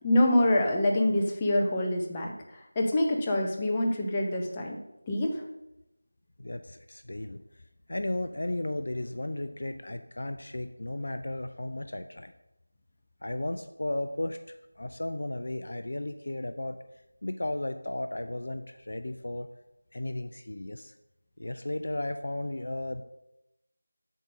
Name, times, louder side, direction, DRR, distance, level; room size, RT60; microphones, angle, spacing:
voice 1, 0.0-4.8 5.1-5.4, left 1 dB, 15° left, 0 dB, 0.7 m, -26 dB
voice 2, 6.4-7.6 7.9-12.3 13.2-16.8 17.2-19.5 19.9-20.9 21.4-23.0, left 1 dB, 50° left, 8 dB, 0.4 m, -34 dB
7.8 x 3.7 x 6.4 m, 0.90 s
figure-of-eight pair, 170°, 0 cm